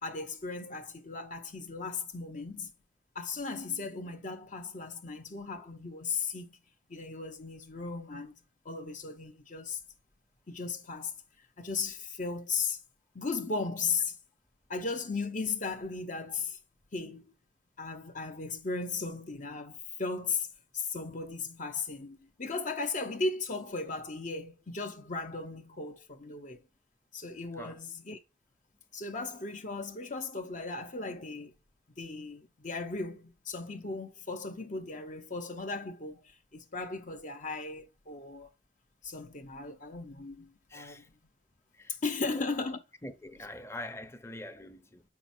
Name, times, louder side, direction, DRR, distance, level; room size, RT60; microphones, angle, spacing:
voice 1, 0.0-2.7 3.1-6.6 6.9-8.3 8.6-9.8 10.5-11.1 11.6-12.8 13.1-14.2 14.7-16.6 16.9-17.2 17.8-20.5 20.7-26.6 27.1-28.2 28.9-31.5 32.0-38.5 39.0-41.0 41.9-42.8, left 4 dB, 45° left, 0.8 m, -36 dB
voice 2, 40.7-41.1 41.8-42.4 43.0-45.0, left 1 dB, 15° left, 0.7 m, -44 dB
7.0 x 5.9 x 2.6 m
head